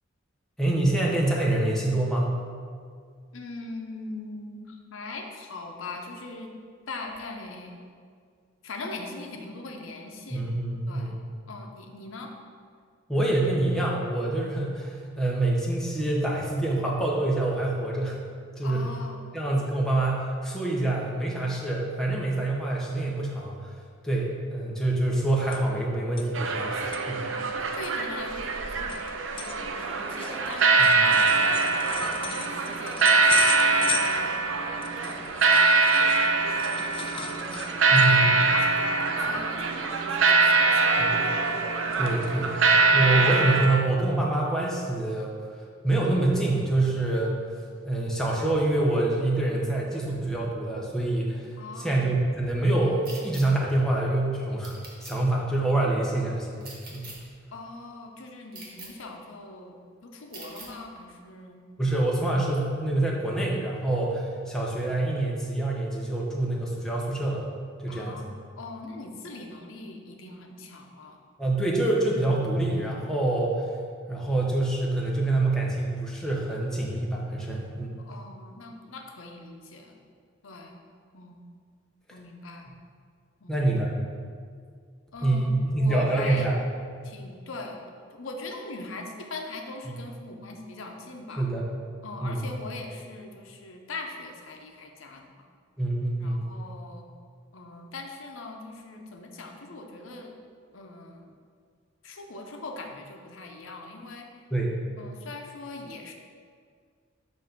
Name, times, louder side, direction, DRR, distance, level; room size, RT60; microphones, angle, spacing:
voice 1, 0.6-2.4 10.3-11.2 13.1-18.2 18.6-18.9 19.3-23.7 24.0-26.8 27.1-27.2 30.8-30.9 37.9-38.4 41.0-41.3 42.0-45.4 45.8-47.3 47.8-57.1 61.8-67.4 67.8-68.2 71.4-73.7 74.1-77.9 83.5-83.9 85.2-86.6 89.9-90.0 91.4-91.7 92.2-92.4 95.8-96.5 104.5-104.8, right 2 dB, 5° left, -3 dB, 0.7 m, -26 dB
voice 2, 3.3-6.5 6.9-7.8 8.6-10.4 10.9-11.1 11.5-12.3 18.6-19.2 27.3-31.8 32.2-34.4 34.7-35.6 35.9-37.7 38.0-41.6 51.6-52.1 57.5-61.6 67.9-68.3 68.6-71.2 78.0-80.0 80.4-80.8 81.1-81.5 82.1-82.7 83.4-83.7 85.1-86.5 87.0-87.8 88.1-91.5 92.0-95.3 96.2-97.1 97.5-100.3 100.7-101.3 102.0-104.3 105.0-106.1, left 2 dB, 80° left, 2 dB, 0.6 m, -41 dB
sound 1, 25.5-25.9 26.2-26.3 26.7-27.0 27.5-27.6 27.8-36.3 36.6-38.3 38.7-38.9 39.2-39.5 40.5-41.1 41.5-42.0 42.2-42.3 42.9-43.0, left 7 dB, 25° left, 0.3 m, -37 dB
sound 2, 26.3-43.7, right 4 dB, 70° right, 0.5 m, -23 dB
sound 3, 53.1-53.4 54.6-55.1 56.6-57.2 58.5-58.9 60.3-60.7, right 3 dB, 45° right, 1.2 m, -43 dB
7.2 x 2.6 x 5.7 m, 2.1 s
head